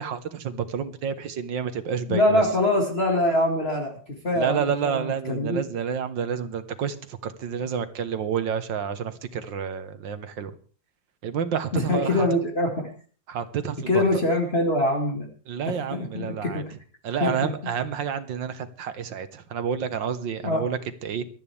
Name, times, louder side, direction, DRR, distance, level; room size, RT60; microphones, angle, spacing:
voice 1, 0.0-2.5 4.3-10.5 11.2-12.3 13.3-14.0 15.5-16.6 17.0-21.3, right 7 dB, 80° right, 11 dB, 1.9 m, -29 dB
voice 2, 2.1-5.0 5.3-5.6 11.7-12.9 13.9-15.3 15.7-16.7 17.2-17.5 20.4-20.7, left 1 dB, 35° left, 1 dB, 2.3 m, -24 dB
22.5 x 13.0 x 3.5 m, 0.42 s
omnidirectional pair, 2.0 m